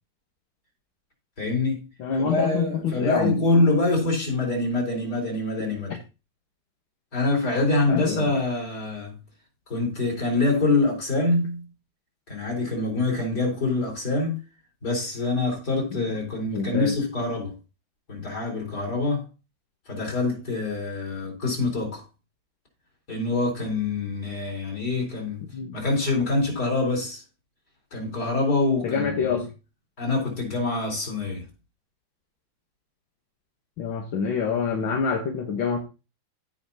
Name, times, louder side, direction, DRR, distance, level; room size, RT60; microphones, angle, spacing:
voice 1, 1.4-1.8 2.2-5.9 7.1-9.2 9.7-11.7 12.3-14.4 14.8-17.5 18.1-19.3 19.9-22.0 23.1-25.4 25.7-27.2 27.9-29.4 30.0-31.5, left 2 dB, 55° left, 4.6 m, -25 dB
voice 2, 2.0-3.4 7.9-8.3 13.7-13.8 15.9-16.1 16.4-17.0 25.5-25.8 28.8-29.5 33.8-35.8, left 6 dB, 85° left, 2.0 m, -26 dB
16.0 x 5.3 x 2.8 m
omnidirectional pair, 2.1 m